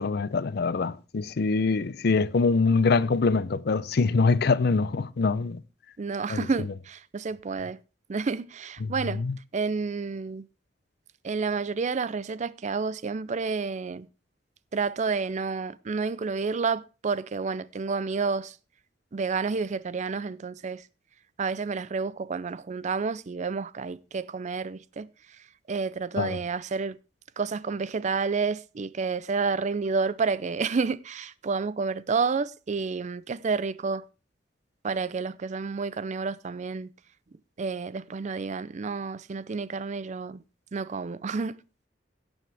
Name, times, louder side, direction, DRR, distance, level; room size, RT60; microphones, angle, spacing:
voice 1, 0.0-5.6 6.3-6.5 8.8-9.4 26.2-26.4, left 4 dB, 60° left, 0.5 m, -24 dB
voice 2, 6.0-7.8 8.1-9.2 9.5-10.5 11.2-14.1 14.7-18.6 19.1-20.8 21.4-25.1 25.7-27.0 27.4-34.0 34.8-36.9 37.6-40.4 40.7-41.6, right 4 dB, 40° right, 0.4 m, -30 dB
17.0 x 7.1 x 3.4 m
head